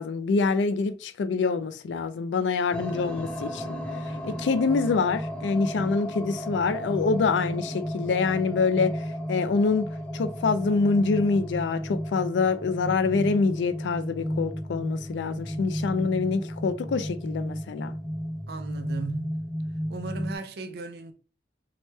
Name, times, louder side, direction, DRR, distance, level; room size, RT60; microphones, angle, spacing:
voice 1, 0.0-3.8 4.2-9.0 9.3-9.9 10.1-17.9, left 4 dB, 85° left, 0.3 m, -25 dB
sound 1, 2.7-20.4, equal, 5° left, 0.4 m, -33 dB
voice 2, 18.5-19.4 19.9-21.1, right 3 dB, 60° right, 0.4 m, -36 dB
2.9 x 2.2 x 3.1 m
head